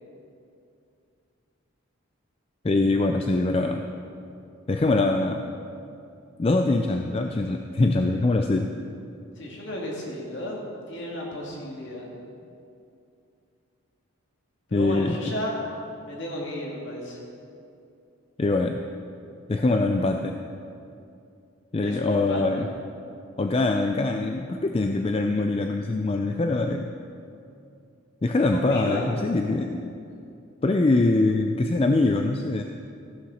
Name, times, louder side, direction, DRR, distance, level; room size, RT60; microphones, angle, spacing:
voice 1, 2.6-3.8 4.7-5.4 6.4-8.7 14.7-15.2 18.4-18.8 19.5-20.4 21.7-22.7 23.4-26.9 28.2-29.9 30.6-32.6, left 2 dB, 25° left, 5 dB, 0.3 m, -23 dB
voice 2, 9.4-12.1 14.7-15.7 15.9-17.2 21.8-22.6 28.5-29.1, left 1 dB, 55° left, -2 dB, 2.3 m, -33 dB
14.5 x 6.8 x 6.4 m, 2.6 s
head